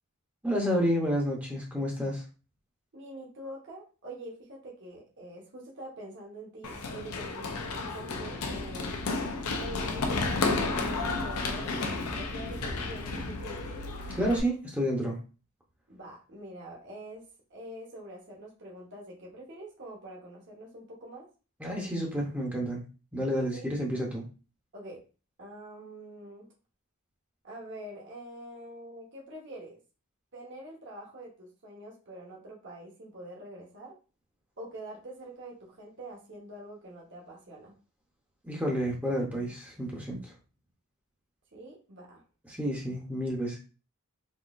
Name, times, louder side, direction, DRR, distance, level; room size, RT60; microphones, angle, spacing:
voice 1, 0.4-2.2 14.1-15.2 21.6-22.8 23.1-24.2 38.4-40.3 42.5-43.6, equal, 5° right, -2 dB, 0.7 m, -30 dB
voice 2, 2.9-9.0 9.6-13.6 15.9-21.3 21.8-22.0 23.5-23.6 24.7-25.0 25.4-26.5 27.4-29.8 30.3-33.9 34.6-37.8 41.5-42.2, right 1 dB, 55° right, -3 dB, 0.9 m, -45 dB
Run, 6.6-14.4, left 3 dB, 80° left, 0.6 m, -32 dB
3.8 x 2.8 x 2.4 m, 0.34 s
head